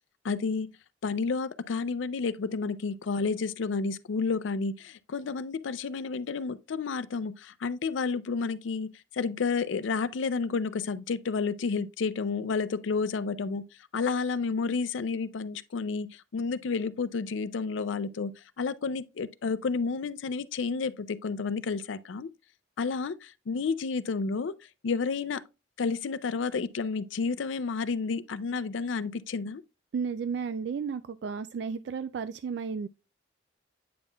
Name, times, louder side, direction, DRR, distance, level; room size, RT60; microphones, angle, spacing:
voice 1, 0.2-0.7 1.0-8.9 9.1-13.6 13.9-22.3 22.8-24.5 24.8-25.4 25.8-29.6, left 4 dB, 85° left, 0.4 m, -31 dB
voice 2, 29.9-32.9, right 6 dB, 60° right, 0.3 m, -33 dB
8.6 x 5.4 x 2.3 m
head